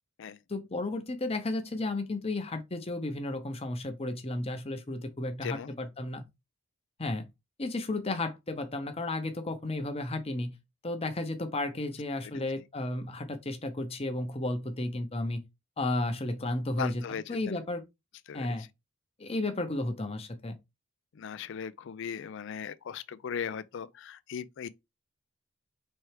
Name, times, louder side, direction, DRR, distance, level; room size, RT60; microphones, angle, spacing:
voice 1, 0.5-6.2 7.0-7.3 7.6-10.6 10.8-15.4 15.8-17.8 18.3-18.6 19.2-20.6, left 2 dB, 30° left, 0.7 m, -33 dB
voice 2, 16.8-17.6 18.3-18.6 21.1-24.7, left 7 dB, 60° left, 0.4 m, -38 dB
4.4 x 3.4 x 3.3 m
head